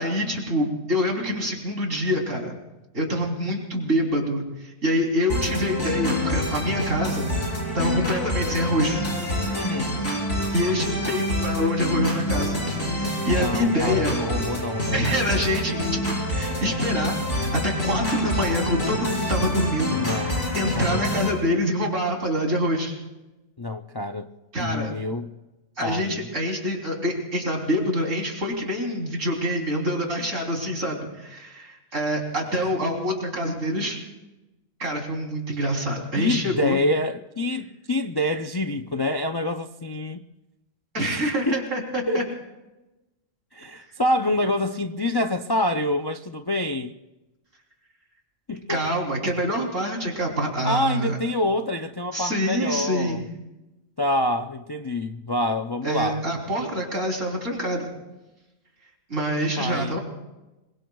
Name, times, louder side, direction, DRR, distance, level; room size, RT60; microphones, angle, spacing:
voice 1, 0.0-2.5 2.9-7.4 7.7-9.0 10.5-12.6 12.9-14.1 14.9-22.9 24.5-24.9 25.8-34.0 34.8-36.8 40.9-42.2 48.7-51.2 52.1-53.2 55.8-57.9 59.1-60.0, equal, 75° right, 3.8 m, -26 dB
sound 1, 5.3-21.3, left 1 dB, 65° left, 5.7 m, -27 dB
voice 2, 9.5-10.0 13.3-15.1 20.0-20.5 20.7-21.0 23.6-24.3 24.6-25.3 25.8-26.3 36.2-40.2 41.0-41.6 42.1-42.3 43.5-46.9 48.5-48.8 50.6-53.2 54.0-56.2 59.4-60.0, left 1 dB, 40° left, 0.3 m, -26 dB
26.5 x 23.0 x 2.3 m
omnidirectional pair, 1.3 m